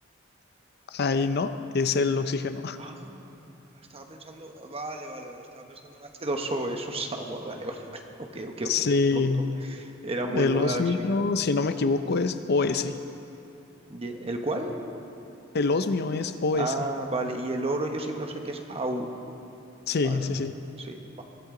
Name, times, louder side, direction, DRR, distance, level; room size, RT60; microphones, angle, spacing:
voice 1, 0.9-2.8 8.7-9.5 10.3-12.9 15.5-16.7 19.9-20.5, left 4 dB, 55° left, 10 dB, 0.5 m, -25 dB
voice 2, 2.8-3.5 3.9-8.0 8.3-8.8 9.1-9.2 9.6-10.9 13.9-14.7 16.5-19.1 20.0-20.2 20.8-21.2, right 2 dB, 30° right, 3 dB, 1.2 m, -33 dB
22.0 x 13.5 x 3.8 m, 2.8 s
head